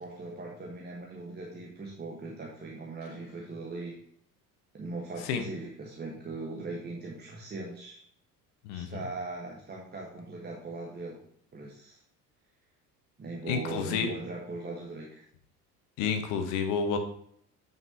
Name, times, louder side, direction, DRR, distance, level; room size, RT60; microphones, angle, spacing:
voice 1, 0.0-4.0 4.7-8.0 8.7-11.2 11.5-12.0 13.2-15.2, right 3 dB, 20° right, -2 dB, 1.3 m, -40 dB
voice 2, 13.4-14.1 16.0-17.0, left 6 dB, 55° left, 7 dB, 1.2 m, -29 dB
9.2 x 5.4 x 2.8 m, 0.67 s
figure-of-eight pair, 60°, 47 cm